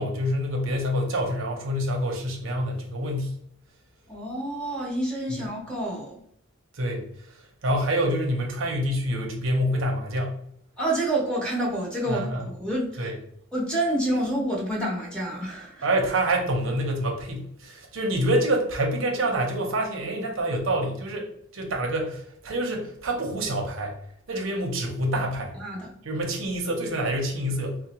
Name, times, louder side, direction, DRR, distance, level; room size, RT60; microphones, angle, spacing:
voice 1, 0.0-3.3 6.7-10.4 12.1-12.4 13.0-13.1 15.8-24.0 24.3-25.5 26.0-27.8, right 1 dB, 75° right, 1 dB, 0.7 m, -27 dB
voice 2, 4.1-6.2 10.8-13.1 13.5-15.9 25.1-25.2 25.6-25.9, right 1 dB, 5° left, -4 dB, 0.9 m, -28 dB
3.7 x 2.0 x 2.9 m, 0.66 s
head